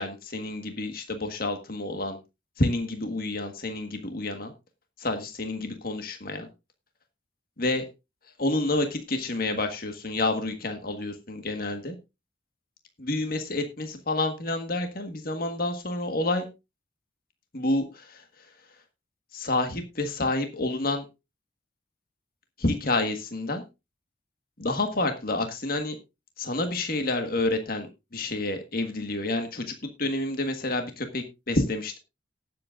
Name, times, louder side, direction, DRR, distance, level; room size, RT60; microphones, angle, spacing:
voice 1, 0.0-2.2 2.6-4.5 5.0-6.5 7.6-7.8 8.4-12.0 13.0-16.5 17.5-18.2 19.3-21.0 22.6-23.6 24.6-26.0 26.4-27.9 28.1-29.7 30.0-32.0, left 2 dB, 50° left, 6 dB, 1.6 m, -29 dB
18.5 x 7.7 x 2.5 m, 0.25 s
head